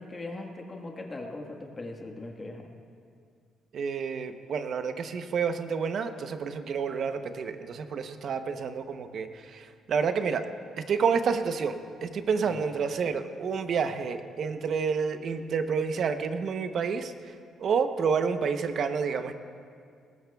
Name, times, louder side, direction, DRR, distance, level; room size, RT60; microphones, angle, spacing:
voice 1, 0.0-2.7 12.5-12.7, left 2 dB, 25° left, 1 dB, 1.5 m, -39 dB
voice 2, 3.7-10.4 10.8-19.3, right 6 dB, 55° right, 8 dB, 0.8 m, -29 dB
19.5 x 18.0 x 2.3 m, 2.2 s
cardioid pair, 115°, 0 cm